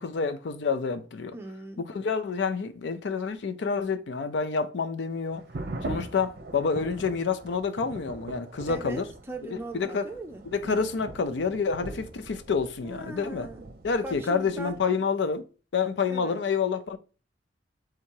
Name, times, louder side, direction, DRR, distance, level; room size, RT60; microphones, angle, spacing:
voice 1, 0.0-1.3 1.9-5.4 5.8-9.0 9.4-10.1 10.5-13.5 13.8-15.4 15.7-17.0, left 5 dB, 70° left, 0.5 m, -28 dB
voice 2, 1.3-1.8 8.6-10.5 12.8-13.7 14.0-14.8 16.1-16.4, right 2 dB, 15° right, 0.6 m, -39 dB
sound 1, 5.3-14.8, right 2 dB, 55° right, 0.6 m, -41 dB
3.7 x 2.7 x 4.4 m
head